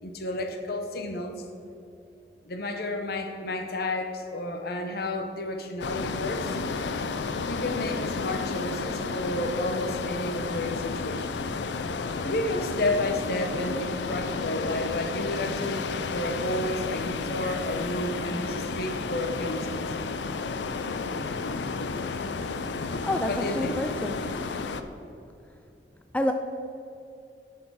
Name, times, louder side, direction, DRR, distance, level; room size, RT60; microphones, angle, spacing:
voice 1, 0.0-1.3 2.5-6.6 7.5-11.4 12.2-19.8 23.2-23.8, left 1 dB, 60° left, 6 dB, 0.9 m, -31 dB
sound 1, 5.8-24.8, left 4 dB, 75° left, 0.5 m, -32 dB
voice 2, 23.0-24.1 26.1-26.3, left 1 dB, 10° left, 6 dB, 0.3 m, -28 dB
7.3 x 6.7 x 5.6 m, 2.7 s
head